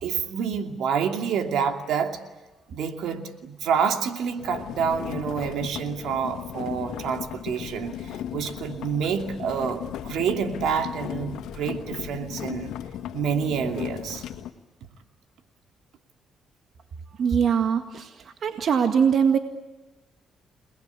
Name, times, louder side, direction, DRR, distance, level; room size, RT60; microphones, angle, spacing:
voice 1, 0.0-2.2 2.7-12.7 13.1-14.2, right 7 dB, 80° right, 5 dB, 2.7 m, -28 dB
sound 1, 4.4-14.5, left 10 dB, 85° left, 1.9 m, -36 dB
voice 2, 17.2-19.4, right 7 dB, 60° right, 6 dB, 1.9 m, -22 dB
29.5 x 20.5 x 8.4 m, 1.1 s
cardioid pair, 90°, 0 cm